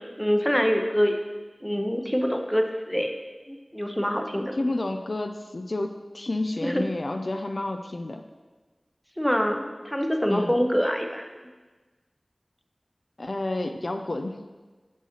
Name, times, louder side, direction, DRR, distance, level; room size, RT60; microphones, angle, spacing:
voice 1, 0.2-1.2 1.6-3.1 3.5-4.6 6.6-6.9 9.2-11.2, equal, 5° left, 3 dB, 0.6 m, -25 dB
voice 2, 4.5-8.2 10.3-10.5 13.2-14.4, left 2 dB, 65° left, 6 dB, 0.3 m, -30 dB
7.1 x 5.6 x 3.0 m, 1.3 s
wide cardioid pair, 50°, 0 cm